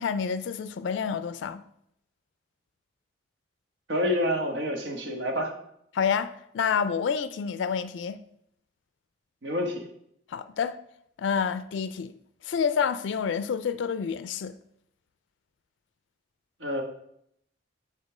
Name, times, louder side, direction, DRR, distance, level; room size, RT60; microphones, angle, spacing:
voice 1, 0.0-1.6 5.9-8.2 10.3-10.8 11.2-12.1 12.4-14.5, left 6 dB, 70° left, 0.3 m, -28 dB
voice 2, 3.9-5.5 9.4-9.8 16.6-16.8, left 1 dB, 80° right, 1.4 m, -28 dB
5.2 x 4.2 x 6.0 m
head